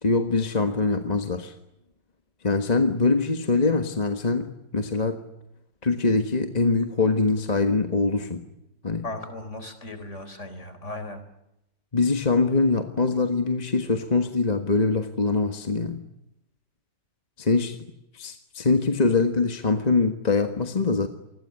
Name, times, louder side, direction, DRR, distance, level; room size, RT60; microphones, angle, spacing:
voice 1, 0.0-1.5 2.4-5.2 5.8-8.4 8.8-9.0 11.9-16.0 17.4-17.8 18.1-21.1, left 3 dB, 25° left, 6 dB, 1.4 m, -23 dB
voice 2, 9.0-11.2, left 2 dB, 40° left, 10 dB, 4.1 m, -36 dB
27.5 x 21.0 x 9.8 m, 0.89 s
omnidirectional pair, 1.9 m